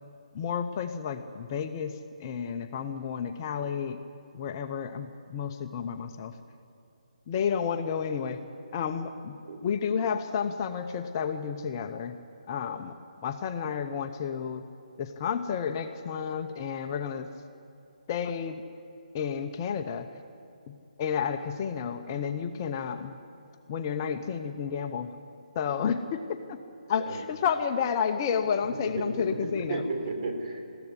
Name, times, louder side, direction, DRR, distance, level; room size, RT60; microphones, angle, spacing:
voice 1, 0.3-4.0 4.3-6.4 7.3-8.4 8.7-9.4 9.6-12.2 12.5-12.9 13.2-14.7 15.0-17.3 18.1-18.6 19.1-20.1 20.7-23.2 23.7-25.1 25.5-26.2 26.5-26.6 26.9-29.8, left 7 dB, 25° left, 7 dB, 0.8 m, -31 dB
voice 2, 28.7-30.8, right 3 dB, 45° right, 3 dB, 3.9 m, -34 dB
20.5 x 15.5 x 9.8 m, 2.8 s
hypercardioid pair, 160°, 4 cm